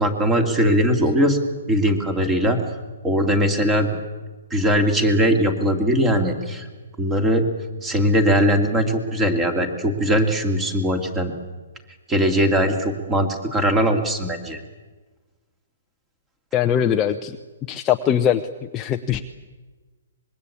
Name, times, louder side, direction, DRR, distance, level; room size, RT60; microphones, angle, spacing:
voice 1, 0.0-1.4 1.7-2.6 3.0-3.9 4.5-6.7 7.0-7.5 7.8-11.3 12.1-14.6, equal, 10° right, 7 dB, 2.5 m, -20 dB
voice 2, 16.5-17.4 17.7-19.2, left 9 dB, 15° left, 5 dB, 0.8 m, -21 dB
25.5 x 21.5 x 8.5 m, 1.3 s
hypercardioid pair, 165°, 0 cm